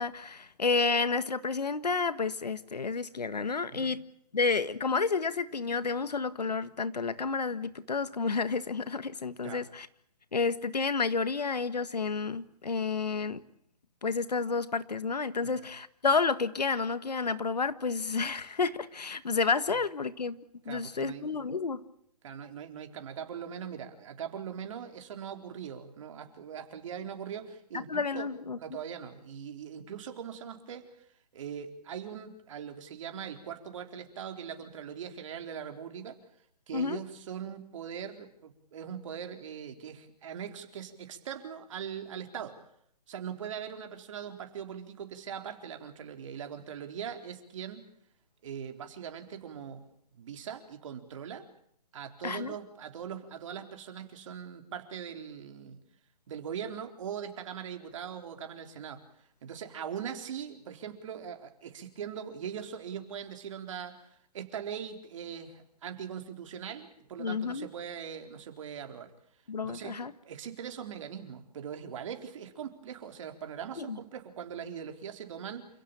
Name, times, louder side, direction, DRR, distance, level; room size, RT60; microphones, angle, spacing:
voice 1, 0.0-4.0 4.3-9.9 10.3-13.4 14.0-20.4 20.6-21.8 27.7-28.6 36.7-37.0 52.2-52.5 67.2-67.7 69.5-70.1 73.8-74.0, left 4 dB, 85° left, 14 dB, 1.7 m, -30 dB
voice 2, 20.7-21.6 22.2-28.3 28.6-30.9 31.3-36.2 36.7-42.6 43.1-47.8 48.4-49.9 50.2-51.4 51.9-55.8 56.3-59.1 59.4-69.1 69.6-70.0 70.2-75.7, right 8 dB, 50° right, 5 dB, 4.1 m, -41 dB
28.5 x 17.0 x 8.7 m, 0.70 s
hypercardioid pair, 140°, 20 cm